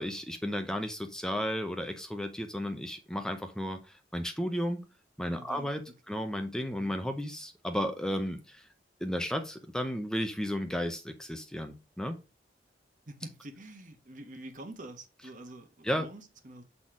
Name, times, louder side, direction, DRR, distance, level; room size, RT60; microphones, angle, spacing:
voice 1, 0.0-4.8 5.2-5.8 6.1-8.6 9.0-12.2 15.8-16.1, equal, 5° left, 0.6 m, -33 dB
voice 2, 5.3-6.2 6.7-7.0 13.1-16.6, right 1 dB, 45° right, 1.2 m, -47 dB
7.6 x 4.2 x 3.7 m
head